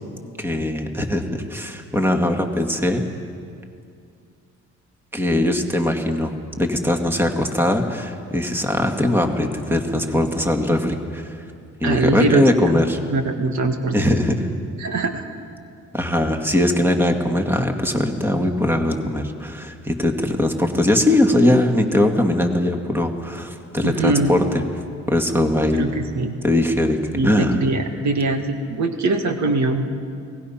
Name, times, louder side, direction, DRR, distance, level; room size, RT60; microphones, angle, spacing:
voice 1, 0.4-3.0 5.1-11.3 11.8-13.0 13.9-14.5 15.9-24.4 25.1-25.9 26.4-27.6, left 1 dB, 5° right, 4 dB, 2.1 m, -20 dB
voice 2, 11.8-12.5 13.1-14.2 14.8-15.2 23.8-24.4 25.7-26.4 27.1-29.9, right 3 dB, 65° right, 5 dB, 1.9 m, -22 dB
29.5 x 19.0 x 5.8 m, 2.4 s
cardioid pair, 90°, 30 cm